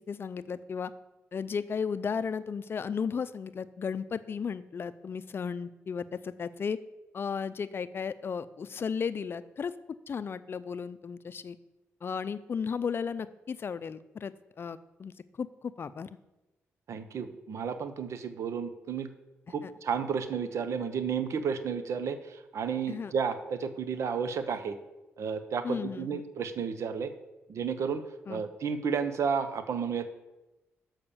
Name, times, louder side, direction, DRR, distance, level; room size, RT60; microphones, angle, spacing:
voice 1, 0.1-0.9 1.3-6.8 7.1-9.7 10.1-11.6 12.0-15.1 15.4-16.2 19.6-19.7 22.9-23.1 25.6-26.2 28.3-28.4, left 6 dB, 50° left, 15 dB, 0.5 m, -34 dB
voice 2, 16.9-19.1 19.5-24.8 25.2-27.1 27.5-28.0 28.3-30.1, right 6 dB, 70° right, 11 dB, 0.8 m, -32 dB
6.8 x 5.7 x 7.1 m, 1.0 s
cardioid pair, 75°, 5 cm